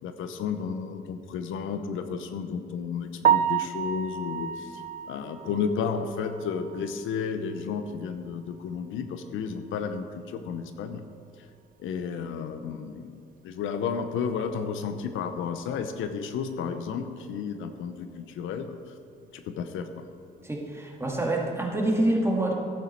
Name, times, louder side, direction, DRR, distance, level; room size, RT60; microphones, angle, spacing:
voice 1, 0.0-11.0 11.8-18.8 19.3-20.1, left 6 dB, 85° left, 8 dB, 0.8 m, -32 dB
Piano, 3.2-7.2 7.6-7.7 8.2-8.3 8.6-8.7 11.8-11.9 20.4-20.6, right 9 dB, 45° right, 0.4 m, -29 dB
voice 2, 20.4-22.5, right 1 dB, 15° right, -1 dB, 2.1 m, -26 dB
12.0 x 8.9 x 4.4 m, 2.5 s
cardioid pair, 90°, 20 cm